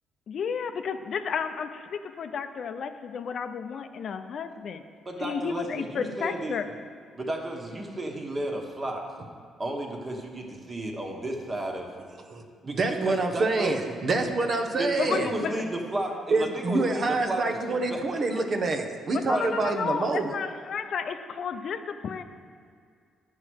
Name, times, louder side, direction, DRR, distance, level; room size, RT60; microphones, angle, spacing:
voice 1, 0.3-4.8 5.2-6.7 15.0-15.6 19.2-22.2, left 6 dB, 60° left, 8 dB, 0.5 m, -32 dB
voice 2, 5.0-6.6 7.2-9.1 9.6-11.9 12.6-13.7 14.8-18.0 19.3-19.5, right 1 dB, 30° right, 2 dB, 1.5 m, -33 dB
voice 3, 12.3-15.3 16.3-20.3, right 3 dB, 50° right, 4 dB, 0.9 m, -27 dB
9.8 x 4.7 x 6.3 m, 2.2 s
cardioid pair, 90°, 0 cm